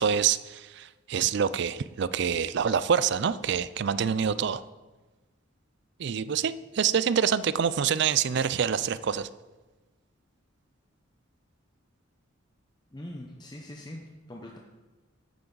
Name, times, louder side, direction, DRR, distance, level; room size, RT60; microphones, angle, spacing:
voice 1, 0.0-4.6 6.0-9.3, right 7 dB, 55° right, 16 dB, 0.4 m, -26 dB
voice 2, 12.9-14.6, left 1 dB, 20° left, 0 dB, 0.8 m, -42 dB
11.5 x 9.1 x 4.0 m, 1.2 s
head